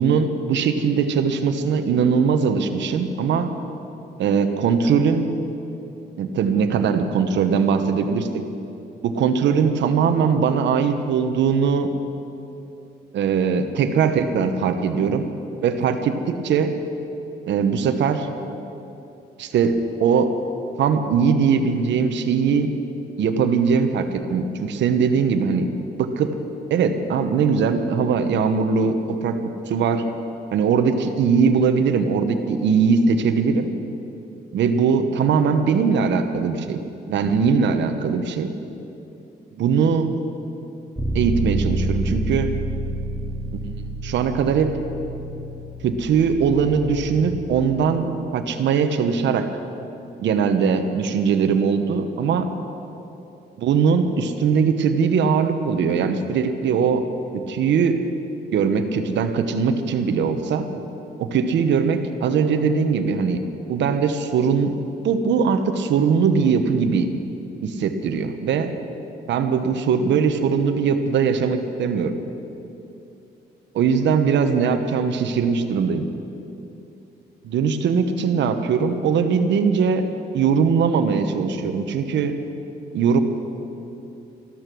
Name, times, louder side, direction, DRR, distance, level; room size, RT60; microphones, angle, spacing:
voice 1, 0.0-3.5 4.2-5.3 6.2-8.4 9.0-11.9 13.1-15.2 15.6-16.7 17.5-18.3 19.4-20.3 20.8-22.7 23.2-25.7 26.0-26.3 26.7-29.4 29.7-30.0 30.5-33.7 34.5-36.8 37.1-38.5 39.5-40.1 41.1-42.5 43.5-44.8 45.8-49.5 50.2-52.5 53.6-57.0 57.3-58.0 58.5-60.7 61.2-63.4 63.7-64.7 65.0-67.1 67.6-68.7 69.3-72.1 73.7-76.1 77.4-80.0 80.3-82.3 82.9-83.2, right 6 dB, 75° right, 8 dB, 1.1 m, -20 dB
Bass guitar, 41.0-47.2, right 2 dB, ahead, 3.1 m, -28 dB
14.0 x 13.0 x 6.2 m, 2.8 s
cardioid pair, 75°, 19 cm